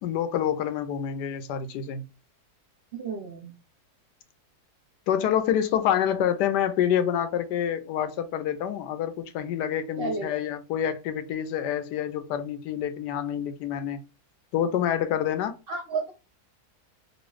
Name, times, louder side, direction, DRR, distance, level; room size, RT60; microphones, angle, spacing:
voice 1, 0.0-2.1 5.1-14.0 14.5-15.6, left 9 dB, 85° left, 1.2 m, -27 dB
voice 2, 2.9-3.5 10.0-10.3 15.7-16.1, right 4 dB, 50° right, 0.7 m, -32 dB
3.0 x 2.6 x 3.0 m
omnidirectional pair, 1.7 m